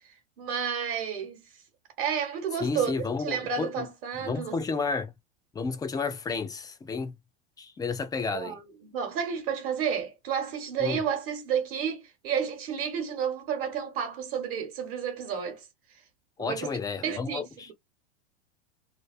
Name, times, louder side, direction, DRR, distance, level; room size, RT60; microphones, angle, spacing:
voice 1, 0.4-1.6 2.0-2.9 3.2-4.6 8.3-15.7 16.4-16.7 17.0-17.4, right 7 dB, 55° right, 1.0 m, -31 dB
voice 2, 2.6-3.7 4.2-5.1 5.5-7.1 7.6-8.6 10.8-11.0 16.4-17.7, left 4 dB, 10° left, 0.3 m, -31 dB
2.3 x 2.3 x 2.4 m
hypercardioid pair, 95°, 33 cm